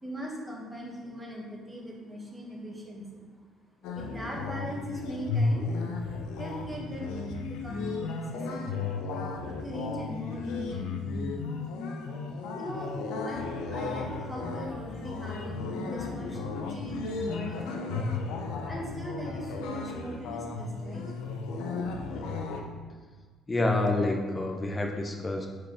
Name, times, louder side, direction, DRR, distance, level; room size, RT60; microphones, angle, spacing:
voice 1, 0.0-3.2 3.8-5.7 6.4-7.1 7.4-8.9 9.4-11.0 12.5-18.0 18.6-21.1, equal, 15° right, -3 dB, 2.0 m, -40 dB
sound 1, 3.8-22.6, left 3 dB, 75° left, 0.7 m, -34 dB
voice 2, 23.5-25.5, left 2 dB, 25° left, 2 dB, 1.1 m, -28 dB
4.8 x 4.7 x 5.9 m, 1.5 s
supercardioid pair, 65°, 0 cm